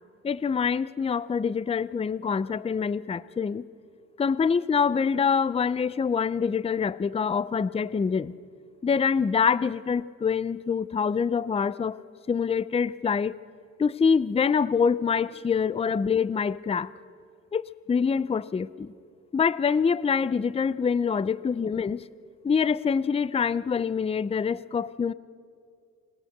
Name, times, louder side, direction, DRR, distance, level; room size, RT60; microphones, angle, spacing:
voice 1, 0.2-3.7 4.2-8.3 8.8-12.0 12.3-13.3 13.8-16.9 17.5-17.6 17.9-18.9 19.3-22.0 22.4-25.1, left 6 dB, 20° left, 18 dB, 0.5 m, -25 dB
30.0 x 20.0 x 6.6 m, 2.3 s
cardioid pair, 90°, 30 cm